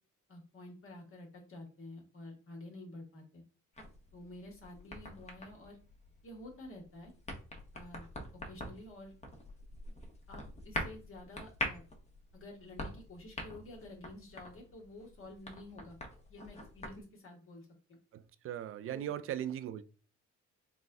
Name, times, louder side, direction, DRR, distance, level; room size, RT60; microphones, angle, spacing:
voice 1, 0.3-3.4 4.1-5.8 6.2-7.1 7.7-8.1 8.3-9.2 10.3-11.8 12.3-16.0 16.3-18.0 18.8-19.1, left 1 dB, 45° left, 1.4 m, -50 dB
sound 1, 3.7-17.0, left 1 dB, 20° left, 1.0 m, -45 dB
voice 2, 18.1-19.8, right 11 dB, 45° right, 0.4 m, -38 dB
4.0 x 2.2 x 3.6 m
cardioid pair, 90°, 30 cm